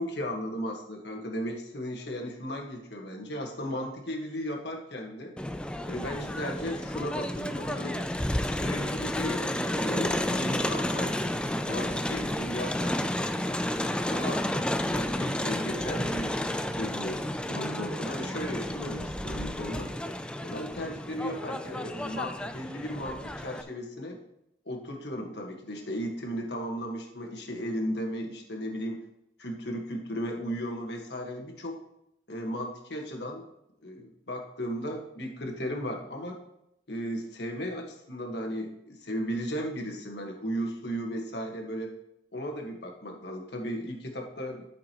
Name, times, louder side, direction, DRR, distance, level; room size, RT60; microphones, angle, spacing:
voice 1, 0.0-5.4 5.9-8.0 8.4-11.1 11.6-13.0 14.1-14.5 14.8-16.3 16.7-17.2 17.5-19.9 20.4-24.2 24.6-29.0 29.4-31.8 32.3-33.4 33.8-36.4 36.9-41.9 42.3-44.7, equal, 65° left, 1 dB, 1.5 m, -35 dB
Crowd, 5.4-23.6, left 1 dB, 5° left, 0.4 m, -31 dB
12.0 x 6.2 x 3.0 m, 0.80 s
head